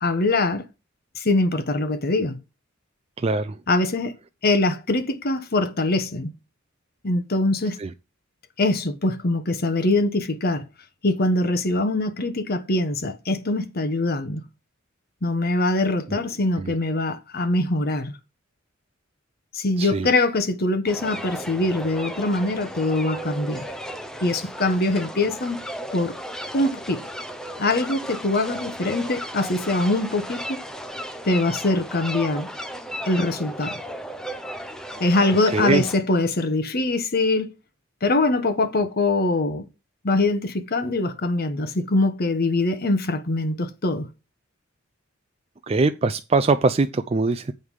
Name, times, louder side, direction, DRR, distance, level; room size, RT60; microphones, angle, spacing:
voice 1, 0.0-0.6 1.2-2.4 3.7-4.1 4.4-6.3 7.0-7.8 8.6-10.6 11.0-14.4 15.2-18.1 19.5-23.6 24.2-25.6 25.9-26.2 26.5-27.0 27.6-30.6 31.2-32.5 33.0-33.8 35.0-37.5 38.0-39.7 40.0-44.1, left 2 dB, 50° left, 1.1 m, -23 dB
voice 2, 3.2-3.6 7.8-7.9 16.1-16.2 16.6-16.7 19.8-20.1 35.5-35.9 45.7-47.5, right 3 dB, 30° right, 0.4 m, -22 dB
sound 1, 20.9-36.0, equal, 5° left, 0.8 m, -35 dB
8.0 x 5.4 x 4.9 m
head